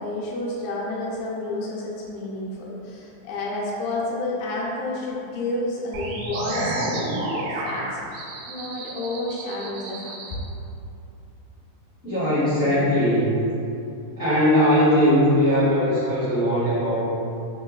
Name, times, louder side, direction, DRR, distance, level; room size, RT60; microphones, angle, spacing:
voice 1, 0.0-7.0 7.5-10.4, left 2 dB, 80° left, -5 dB, 2.4 m, -30 dB
sound 1, 5.9-10.4, right 2 dB, 80° right, 2.0 m, -31 dB
voice 2, 12.0-13.4 14.2-17.0, equal, 55° left, -14 dB, 0.8 m, -20 dB
5.9 x 3.0 x 2.3 m, 2.7 s
omnidirectional pair, 4.1 m